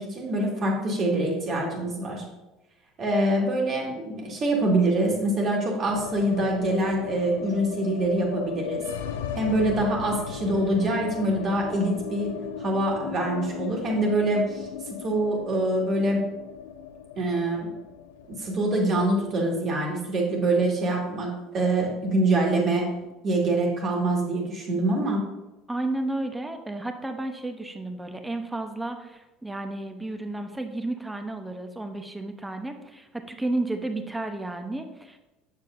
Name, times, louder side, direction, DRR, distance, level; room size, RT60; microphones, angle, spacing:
voice 1, 0.0-2.2 3.0-8.8 9.4-12.3 12.6-14.7 15.0-16.2 17.2-17.7 18.4-22.9 23.2-25.3, right 1 dB, 45° right, 0 dB, 1.9 m, -25 dB
sound 1, 5.9-22.0 22.3-22.4 22.7-23.4, left 8 dB, 75° left, 0.4 m, -37 dB
voice 2, 25.7-35.2, right 2 dB, 10° right, 6 dB, 0.8 m, -32 dB
7.1 x 6.5 x 2.6 m, 1.0 s
hypercardioid pair, 70°, 0 cm